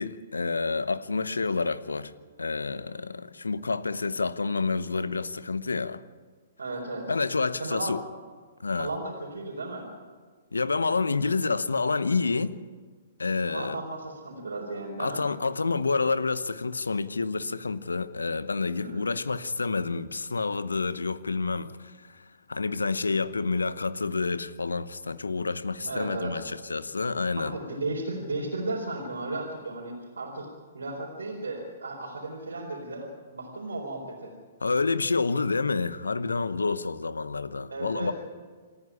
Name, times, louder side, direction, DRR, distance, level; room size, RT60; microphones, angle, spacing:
voice 1, 0.0-2.1 2.4-6.0 7.1-8.0 8.6-8.9 10.5-12.5 13.2-13.8 15.0-27.6 34.6-38.1, left 4 dB, 85° left, 0.9 m, -28 dB
voice 2, 6.6-7.1 7.6-7.9 8.8-9.9 13.5-15.2 18.7-19.2 25.8-26.4 27.3-30.5 30.7-34.3 37.7-38.1, right 2 dB, 80° right, 4.3 m, -35 dB
28.0 x 9.9 x 9.9 m
figure-of-eight pair, 120°, 0 cm